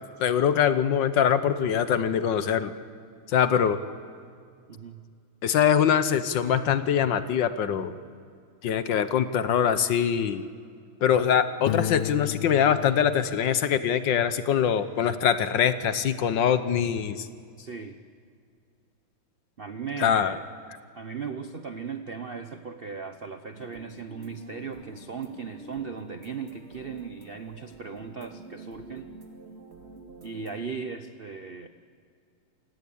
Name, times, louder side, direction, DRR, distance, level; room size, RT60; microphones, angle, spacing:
voice 1, 0.2-2.7 3.3-3.8 5.4-8.0 8.6-10.4 11.0-17.3 20.0-20.3, left 8 dB, 65° left, 12 dB, 1.5 m, -23 dB
voice 2, 4.7-5.1 17.6-18.0 19.6-20.4 20.9-29.1 30.2-31.7, right 5 dB, 60° right, 8 dB, 0.6 m, -37 dB
Piano, 11.7-14.4, left 12 dB, 85° left, 1.7 m, -34 dB
sound 1, 23.5-30.6, right 2 dB, 30° right, 2.7 m, -47 dB
28.0 x 17.5 x 8.6 m, 2.3 s
omnidirectional pair, 2.3 m